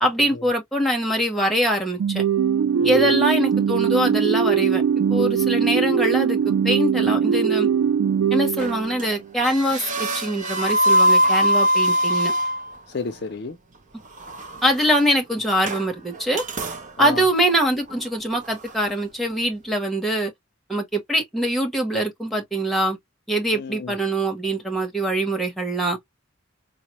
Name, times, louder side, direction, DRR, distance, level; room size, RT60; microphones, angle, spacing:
voice 1, 0.0-2.2 2.8-4.8 5.1-7.7 8.3-12.3 14.6-16.4 17.0-20.3 20.7-23.0 23.3-26.0, right 1 dB, ahead, 0.9 m, -23 dB
sound 1, 2.0-9.2, right 7 dB, 85° right, 0.3 m, -21 dB
voice 2, 2.8-3.1 12.9-13.6 17.0-17.2 23.5-23.9, left 4 dB, 50° left, 0.5 m, -31 dB
sound 2, 8.6-9.1 9.4-12.8 14.1-15.0 15.5-15.9 16.1-16.9 17.4-17.5 17.9-18.0 18.4-18.9, equal, 35° right, 0.7 m, -22 dB
4.0 x 2.1 x 2.9 m
head